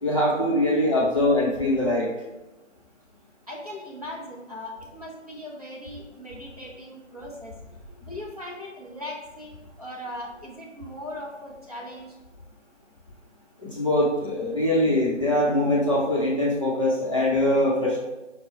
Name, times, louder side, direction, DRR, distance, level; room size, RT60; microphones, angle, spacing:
voice 1, 0.0-2.1 13.6-18.0, left 1 dB, 25° left, -7 dB, 0.8 m, -22 dB
voice 2, 3.5-7.5 8.0-12.2, left 1 dB, 30° right, -6 dB, 0.8 m, -39 dB
5.3 x 2.2 x 4.2 m, 1.0 s
figure-of-eight pair, 160°, 37 cm